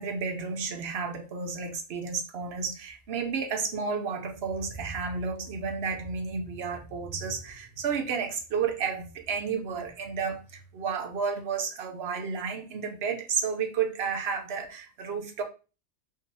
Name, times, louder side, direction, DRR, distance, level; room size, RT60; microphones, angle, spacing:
voice 1, 0.0-15.4, right 5 dB, 60° right, 0.9 m, -32 dB
3.7 x 2.8 x 2.7 m
omnidirectional pair, 1.3 m